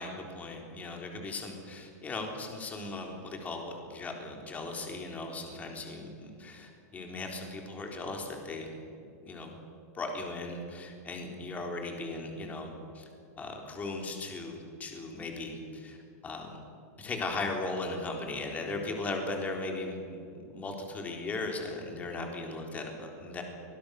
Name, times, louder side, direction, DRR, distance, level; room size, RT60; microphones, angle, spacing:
voice 1, 0.0-8.7 9.2-9.6 9.9-13.1 13.4-16.0 16.2-16.6 17.0-23.4, left 2 dB, 15° left, 2 dB, 3.9 m, -37 dB
25.0 x 20.5 x 6.6 m, 2.5 s
supercardioid pair, 150°, 9 cm